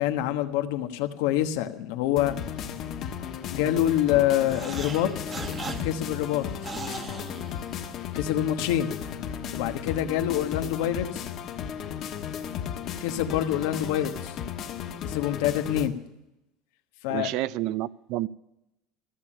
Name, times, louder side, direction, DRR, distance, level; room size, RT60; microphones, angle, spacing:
voice 1, 0.0-2.4 3.5-5.3 5.8-6.5 8.1-8.9 9.5-11.3 13.0-14.3 15.0-15.9 17.0-17.3, left 12 dB, 85° left, 7 dB, 1.2 m, -26 dB
sound 1, 2.2-15.9, left 8 dB, 45° left, 1.2 m, -35 dB
sound 2, 4.4-8.2, right 2 dB, 20° right, 1.3 m, -39 dB
voice 2, 17.1-18.3, right 16 dB, 60° right, 19 dB, 0.4 m, -29 dB
14.5 x 7.3 x 9.9 m, 0.89 s
cardioid pair, 145°, 0 cm